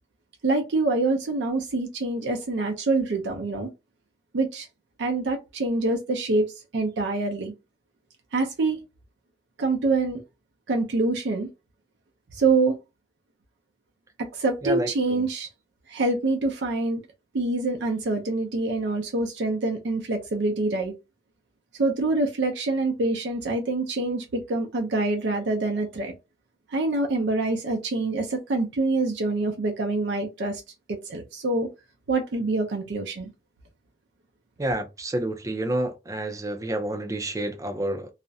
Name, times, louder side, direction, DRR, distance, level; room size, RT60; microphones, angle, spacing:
voice 1, 0.4-3.7 4.3-4.7 5.0-7.5 8.3-8.8 9.6-10.2 10.7-11.5 12.3-12.8 14.2-15.5 15.9-17.0 17.3-20.9 21.8-26.1 26.7-30.6 30.9-31.7 32.1-33.3, right 3 dB, 75° right, 0.5 m, -25 dB
voice 2, 34.6-38.1, right 1 dB, 20° right, 0.4 m, -28 dB
2.4 x 2.0 x 2.6 m
head